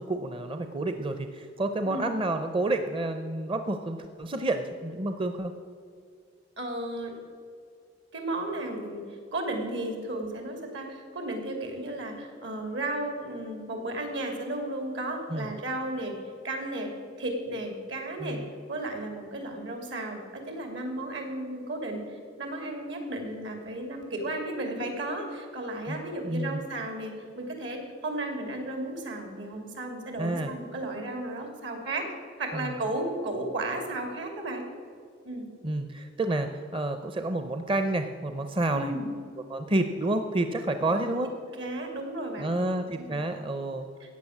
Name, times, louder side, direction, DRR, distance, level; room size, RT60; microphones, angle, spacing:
voice 1, 0.0-5.5 15.3-15.5 18.2-18.4 25.9-26.6 30.2-30.5 32.5-32.7 35.6-38.9 39.5-41.3 42.4-43.9, right 2 dB, 30° right, 7 dB, 0.6 m, -29 dB
voice 2, 6.6-7.2 8.1-16.2 16.4-16.9 17.2-18.4 18.7-32.1 32.4-34.6 35.2-35.4 38.7-39.1 41.5-42.5 43.0-43.2 44.0-44.1, right 1 dB, 75° right, 4 dB, 2.9 m, -34 dB
14.5 x 9.0 x 7.3 m, 2.2 s
head